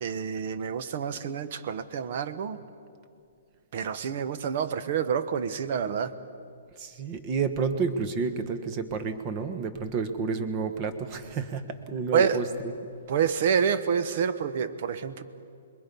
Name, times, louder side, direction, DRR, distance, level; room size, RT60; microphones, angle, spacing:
voice 1, 0.0-2.6 3.7-6.2 12.1-12.4 13.1-15.2, right 7 dB, 50° right, 13 dB, 1.0 m, -28 dB
voice 2, 6.8-12.4, right 5 dB, 30° right, 9 dB, 1.3 m, -30 dB
26.5 x 22.0 x 5.4 m, 2.5 s
hypercardioid pair, 160°, 0 cm